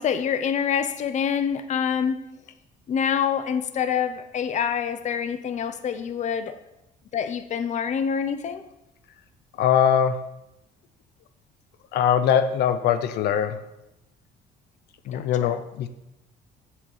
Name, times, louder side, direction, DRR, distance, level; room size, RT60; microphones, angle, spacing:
voice 1, 0.0-2.3 2.9-6.6 7.1-8.6 15.1-15.5, left 7 dB, 45° left, 0.8 m, -26 dB
voice 2, 9.6-10.3 11.9-13.6 15.1-15.9, left 8 dB, 75° left, 0.7 m, -22 dB
7.6 x 6.8 x 7.3 m
cardioid pair, 110°, 17 cm